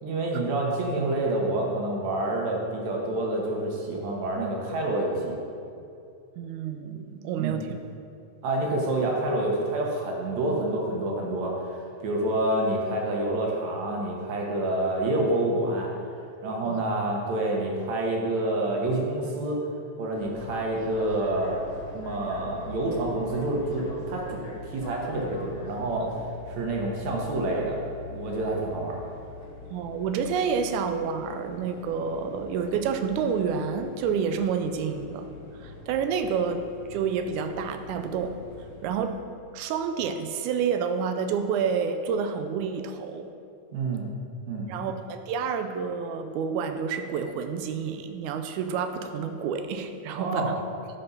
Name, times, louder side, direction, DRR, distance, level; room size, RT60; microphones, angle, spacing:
voice 1, 0.0-5.4 7.3-7.5 8.4-11.5 12.0-15.9 16.4-19.6 20.0-21.6 21.9-24.4 24.7-26.1 26.5-29.0 43.7-44.1 44.5-44.7 50.1-50.5, right 2 dB, 70° right, -1 dB, 2.2 m, -28 dB
voice 2, 6.4-7.7 16.6-16.8 29.7-35.3 35.6-36.7 36.9-38.4 38.8-39.2 39.5-43.3 44.7-50.6, right 6 dB, 90° right, 8 dB, 2.1 m, -29 dB
sound 1, 20.1-39.1, left 3 dB, 70° left, 1.2 m, -43 dB
11.5 x 5.2 x 4.1 m, 2.5 s
omnidirectional pair, 3.4 m